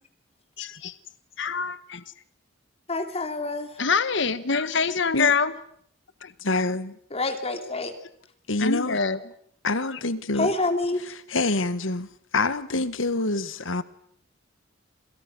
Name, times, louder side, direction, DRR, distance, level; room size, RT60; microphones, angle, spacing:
voice 1, 0.6-0.9 1.4-2.0 3.8-5.5 6.2-6.3 8.6-9.2 9.9-10.0, left 5 dB, 65° left, 1.2 m, -25 dB
voice 2, 2.9-3.7 7.1-7.9 10.4-11.0, left 2 dB, 30° left, 2.9 m, -27 dB
voice 3, 6.4-7.0 8.5-9.0 9.6-10.5 11.0-13.8, left 2 dB, 90° left, 1.7 m, -26 dB
29.0 x 27.5 x 6.3 m
head